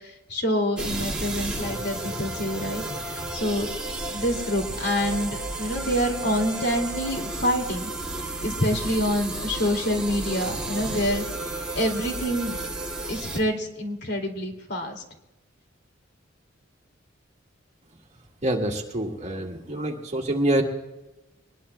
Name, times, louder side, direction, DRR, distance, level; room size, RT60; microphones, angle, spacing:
voice 1, 0.3-3.7 4.1-7.9 8.4-11.2 11.8-12.6 13.1-15.0, equal, 60° left, 3 dB, 2.4 m, -27 dB
sound 1, 0.8-13.4, right 2 dB, 5° right, 1.9 m, -32 dB
voice 2, 18.4-20.6, right 1 dB, 35° right, 2 dB, 1.8 m, -26 dB
24.0 x 20.5 x 2.2 m, 1.0 s
head